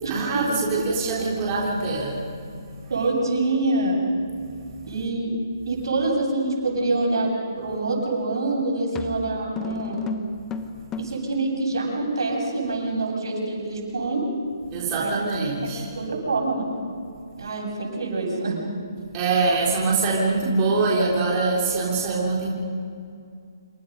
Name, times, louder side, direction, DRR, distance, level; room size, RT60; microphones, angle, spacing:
voice 1, 0.1-2.9 4.4-4.8 14.7-15.9 19.1-22.5, right 3 dB, 25° right, -4 dB, 3.5 m, -24 dB
voice 2, 2.9-4.0 4.9-5.4 5.6-10.1 11.0-14.3 14.9-15.2 15.6-16.7 17.4-18.6, right 2 dB, 80° right, -1 dB, 7.9 m, -26 dB
sound 1, 8.1-8.3 8.9-11.3, left 2 dB, 10° left, 0.9 m, -33 dB
27.0 x 25.5 x 5.5 m, 2.4 s
hypercardioid pair, 165°, 2 cm